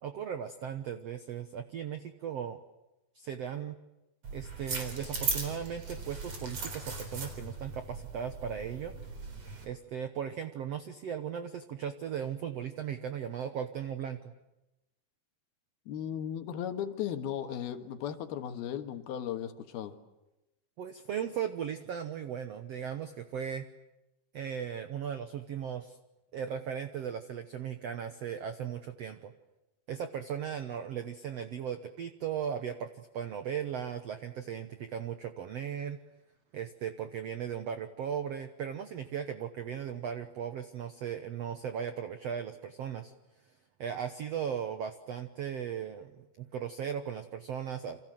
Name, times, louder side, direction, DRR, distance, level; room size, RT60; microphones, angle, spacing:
voice 1, 0.0-2.6 3.1-3.7 4.3-8.9 9.6-14.3 20.8-23.7 24.3-26.0 26.3-29.3 29.9-36.0 36.5-43.1 43.8-48.0, right 8 dB, 75° right, 8 dB, 1.5 m, -37 dB
sound 1, 4.2-9.6, right 4 dB, 40° right, 4.8 m, -38 dB
voice 2, 15.9-20.0, left 9 dB, 75° left, 7 dB, 3.4 m, -36 dB
29.0 x 26.0 x 7.8 m, 0.98 s
omnidirectional pair, 4.5 m